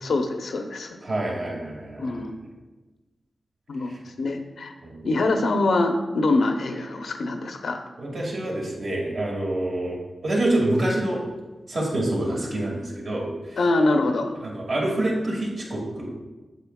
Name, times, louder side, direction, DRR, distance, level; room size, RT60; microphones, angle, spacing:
voice 1, 0.0-1.0 2.0-2.4 3.7-4.7 5.0-7.8 13.6-14.3, left 2 dB, 80° left, 5 dB, 0.7 m, -24 dB
voice 2, 1.0-2.1 3.9-4.0 4.8-5.1 8.0-11.2 11.7-13.6 14.4-16.1, right 1 dB, 55° right, -3 dB, 2.0 m, -27 dB
8.2 x 6.5 x 2.3 m, 1.2 s
wide cardioid pair, 100°, 0 cm